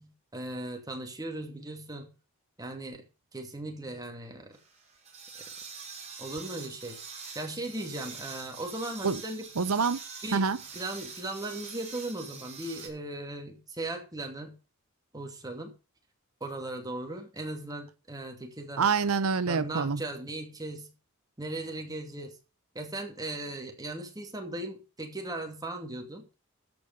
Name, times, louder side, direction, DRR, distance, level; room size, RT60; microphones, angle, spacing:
voice 1, 0.0-2.1 2.6-3.1 3.3-4.6 6.2-7.0 7.3-9.5 10.2-14.5 15.1-15.7 16.4-18.9 19.5-20.9 21.4-22.4 22.7-26.2, right 2 dB, 20° right, 2.5 m, -38 dB
sound 1, 4.5-12.9, right 5 dB, 35° right, 4.8 m, -45 dB
voice 2, 9.6-10.0 10.3-10.6 18.8-20.0, right 5 dB, 85° right, 0.7 m, -26 dB
13.5 x 5.3 x 6.7 m
head